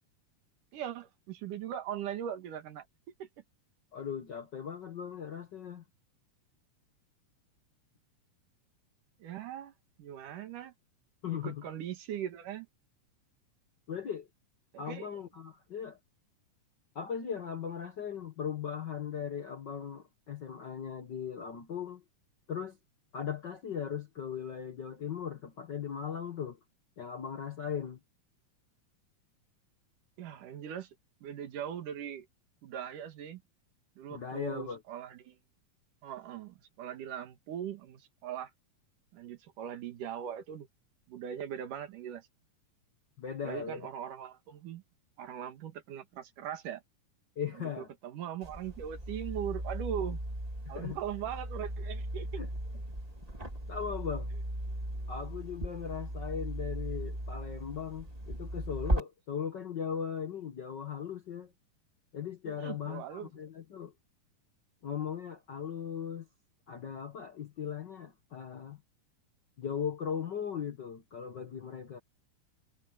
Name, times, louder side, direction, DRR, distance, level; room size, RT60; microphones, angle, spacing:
voice 1, 0.7-2.9 3.2-3.3 9.2-9.7 10.0-10.7 11.3-12.7 14.7-15.1 30.2-30.9 31.2-32.3 32.6-33.4 34.0-35.4 36.0-38.5 39.1-40.7 41.1-42.3 43.4-44.8 45.2-46.8 47.6-50.2 50.7-52.4 62.5-63.3, right 9 dB, 85° right, 3.3 m, -40 dB
voice 2, 3.9-5.8 11.2-11.6 13.9-14.3 14.8-16.0 16.9-22.0 22.5-22.8 23.1-26.6 27.0-28.0 34.1-34.8 43.2-43.9 47.4-47.9 50.6-51.0 52.4-52.5 53.7-54.3 55.1-61.5 62.1-63.9 64.8-66.3 66.7-68.8 69.6-72.0, left 7 dB, 55° left, 1.2 m, -38 dB
sound 1, 48.4-59.0, right 1 dB, 15° right, 2.4 m, -37 dB
omnidirectional pair, 3.6 m